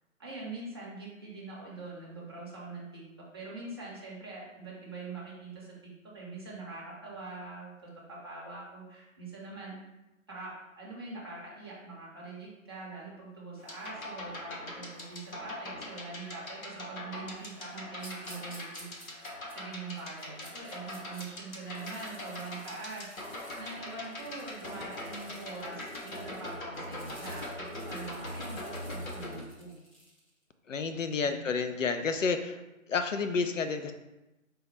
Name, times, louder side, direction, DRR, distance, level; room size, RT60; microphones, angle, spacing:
voice 1, 0.2-3.1 3.3-9.8 10.3-29.8 31.1-31.4, right 3 dB, 20° right, -6 dB, 0.7 m, -43 dB
sound 1, 13.6-29.4, left 1 dB, 80° left, 1.2 m, -42 dB
sound 2, 18.0-21.3 21.6-30.3, equal, 25° left, 0.7 m, -54 dB
voice 2, 30.7-32.6 32.9-33.9, left 5 dB, 65° left, 7 dB, 0.5 m, -30 dB
4.6 x 2.1 x 4.5 m, 0.99 s
figure-of-eight pair, 155°, 41 cm